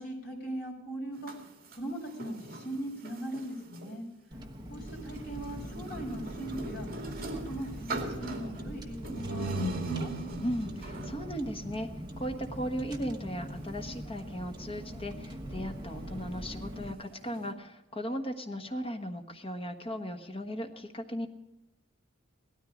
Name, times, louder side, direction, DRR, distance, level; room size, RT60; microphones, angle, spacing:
voice 1, 0.0-1.4 1.7-4.1 4.7-6.9 7.2-10.1, right 1 dB, 50° left, -1 dB, 5.6 m, -40 dB
sound 1, 1.1-3.9 4.8-17.5, right 1 dB, 45° right, 2.5 m, -41 dB
Car, 4.3-16.9, equal, 20° right, 1.4 m, -42 dB
voice 2, 10.4-11.9 12.2-21.3, equal, 30° left, 5 dB, 1.3 m, -37 dB
17.5 x 13.0 x 5.1 m, 0.97 s
head